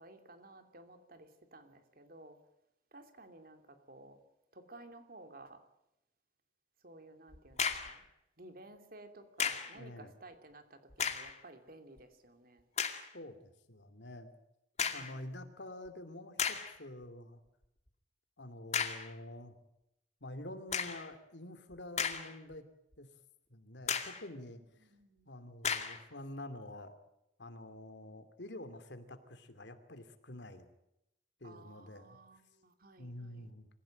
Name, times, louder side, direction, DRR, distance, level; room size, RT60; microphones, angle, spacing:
voice 1, 0.0-2.4 2.9-4.2 4.5-5.6 6.8-8.0 8.4-12.6 14.8-15.4 24.6-25.2 31.4-33.5, right 2 dB, 55° right, 7 dB, 3.0 m, -55 dB
sound 1, 7.3-8.0 9.4-9.8 10.9-11.4 12.0-12.1 12.8-13.1 14.8-15.2 15.9-16.0 16.4-16.8 18.7-19.1 20.7-21.1 21.7-22.5 22.9-23.0 23.9-24.3 25.6-26.0, left 7 dB, 40° left, 2.3 m, -35 dB
voice 2, 9.7-10.1 13.1-14.3 14.9-17.4 18.4-19.6 20.2-22.6 23.0-23.1 23.5-24.9 25.3-26.9 27.4-30.7 31.4-32.2 33.0-33.7, left 1 dB, 80° left, 9 dB, 2.7 m, -48 dB
25.5 x 16.0 x 9.1 m, 0.85 s
head